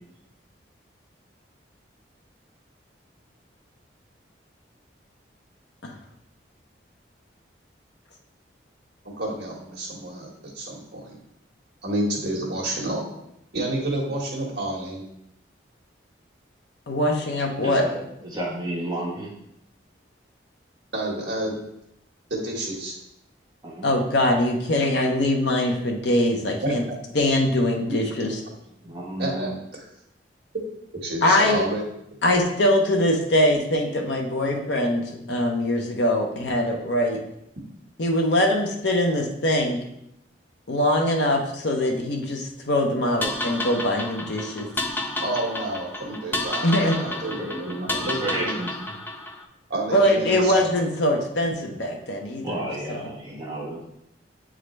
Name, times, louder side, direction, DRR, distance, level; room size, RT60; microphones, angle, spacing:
voice 1, 9.2-11.2 11.8-13.0 13.5-15.0 20.9-21.5 22.3-22.9 26.6-27.0 29.2-29.9 31.0-31.8 45.2-48.6 49.7-50.5, right 1 dB, 65° right, -2 dB, 1.6 m, -29 dB
voice 2, 16.9-17.9 23.8-26.8 27.1-28.3 31.2-31.6 32.2-37.2 38.0-39.8 40.7-44.7 46.6-47.0 49.9-52.6 52.9-53.1, left 1 dB, 70° left, 1 dB, 1.0 m, -22 dB
voice 3, 17.6-18.0 18.3-19.3 23.6-23.9 28.8-29.5 47.1-48.9 52.4-53.8, right 1 dB, 20° right, -5 dB, 1.6 m, -32 dB
sound 1, 43.2-49.4, left 1 dB, 10° left, 0.4 m, -31 dB
7.9 x 3.8 x 3.2 m, 0.80 s
head